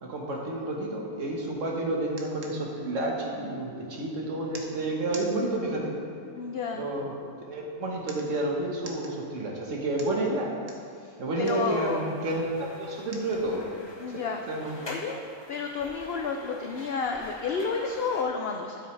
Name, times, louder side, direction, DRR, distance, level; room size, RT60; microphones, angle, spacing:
voice 1, 0.0-5.9 6.8-7.1 7.4-10.5 11.2-13.6 14.1-14.2 14.5-14.7, right 1 dB, 60° right, -1 dB, 1.6 m, -30 dB
voice 2, 6.4-6.8 10.9-12.1 14.0-15.2 15.5-18.8, left 5 dB, 65° left, 3 dB, 0.6 m, -31 dB
sound 1, 11.4-18.2, left 1 dB, 25° left, 0.6 m, -46 dB
12.5 x 6.5 x 3.3 m, 2.5 s
omnidirectional pair, 1.6 m